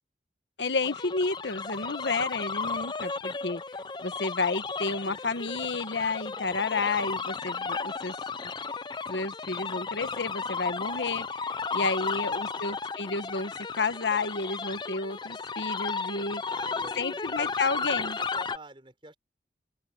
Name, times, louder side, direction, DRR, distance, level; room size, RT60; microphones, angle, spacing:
voice 1, 0.6-3.6 4.0-8.1 9.1-16.4 17.0-18.2, left 3 dB, 80° left, 1.2 m, -31 dB
sound 1, 0.8-18.6, left 4 dB, 25° left, 0.5 m, -34 dB
voice 2, 11.8-12.8 16.4-19.2, right 2 dB, 30° right, 4.9 m, -49 dB
open air
head